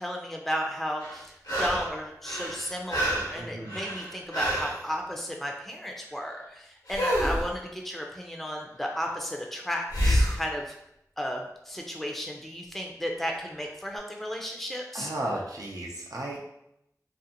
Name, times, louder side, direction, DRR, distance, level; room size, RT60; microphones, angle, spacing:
voice 1, 0.0-10.8 11.2-15.1, equal, 5° left, 1 dB, 0.4 m, -34 dB
sound 1, 1.0-1.9 2.2-4.8 6.9-7.5 9.9-10.4 13.3-13.4, equal, 75° left, 1.0 m, -28 dB
voice 2, 3.4-3.7 14.9-16.6, right 1 dB, 70° right, -3 dB, 0.4 m, -34 dB
2.5 x 2.5 x 2.7 m, 0.80 s
wide cardioid pair, 40°, 6 cm